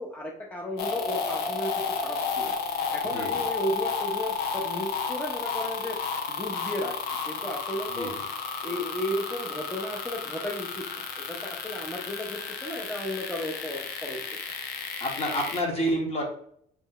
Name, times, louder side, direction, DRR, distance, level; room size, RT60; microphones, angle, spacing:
voice 1, 0.0-6.0 6.3-6.9 7.3-8.1 8.6-14.2, equal, 10° left, -2 dB, 0.6 m, -34 dB
sound 1, 0.8-15.6, left 5 dB, 75° left, 0.7 m, -32 dB
voice 2, 3.1-3.4 7.9-8.2 15.0-16.2, equal, 35° left, 1 dB, 1.2 m, -29 dB
3.3 x 3.1 x 3.8 m, 0.66 s
cardioid pair, 110°, 17 cm